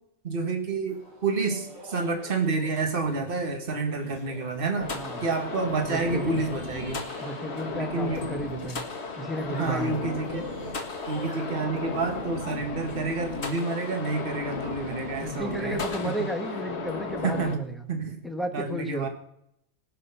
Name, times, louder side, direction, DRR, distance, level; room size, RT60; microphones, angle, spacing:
voice 1, 0.2-4.9 5.2-7.0 7.7-8.3 9.6-10.5 11.1-16.1 17.2-18.2 18.5-19.1, right 3 dB, 45° right, 4 dB, 1.8 m, -29 dB
sound 1, 0.9-12.5, left 1 dB, 60° right, 7.3 m, -47 dB
sound 2, 4.8-17.6, left 3 dB, 60° left, 2.0 m, -35 dB
voice 2, 4.9-5.2 5.9-6.4 7.2-8.8 9.1-10.1 15.2-17.8 18.2-19.1, right 1 dB, ahead, 4 dB, 1.4 m, -33 dB
20.0 x 6.7 x 5.6 m, 0.76 s
omnidirectional pair, 1.3 m